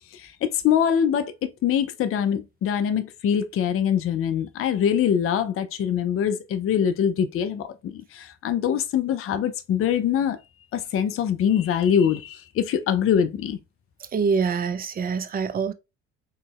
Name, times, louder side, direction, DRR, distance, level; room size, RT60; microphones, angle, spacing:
voice 1, 0.1-10.4 10.7-13.6, left 8 dB, 35° left, 0.5 m, -23 dB
voice 2, 14.1-15.7, right 5 dB, 25° right, 0.5 m, -25 dB
3.8 x 2.8 x 2.3 m
hypercardioid pair, 60°, 38 cm